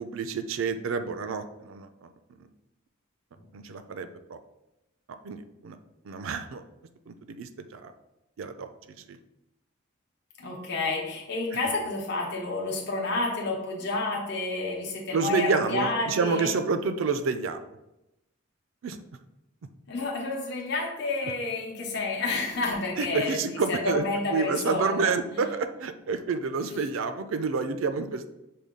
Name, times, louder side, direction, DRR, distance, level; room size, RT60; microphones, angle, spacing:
voice 1, 0.0-2.1 2.4-2.5 3.5-4.4 5.2-5.8 6.0-6.6 7.1-7.9 8.4-8.7 9.1-9.2 15.1-17.6 18.8-19.0 23.0-28.3, right 4 dB, 75° right, 9 dB, 0.4 m, -29 dB
voice 2, 10.4-16.5 19.9-25.4, left 3 dB, 55° left, -2 dB, 0.8 m, -30 dB
6.6 x 2.3 x 3.6 m, 0.94 s
head